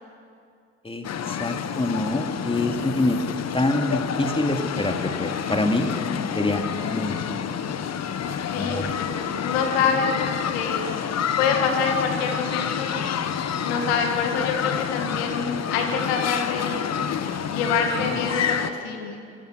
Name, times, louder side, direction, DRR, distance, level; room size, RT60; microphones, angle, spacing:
voice 1, 0.8-5.9 6.3-7.1 8.6-8.9 18.0-18.2, left 2 dB, 15° left, 4 dB, 2.7 m, -26 dB
sound 1, 1.0-18.7, left 8 dB, 55° left, 1.3 m, -28 dB
voice 2, 8.5-10.8 11.4-13.0 13.6-16.8 17.5-19.2, left 5 dB, 85° left, 4 dB, 1.8 m, -26 dB
26.0 x 19.5 x 6.4 m, 2.4 s
hypercardioid pair, 45°, 31 cm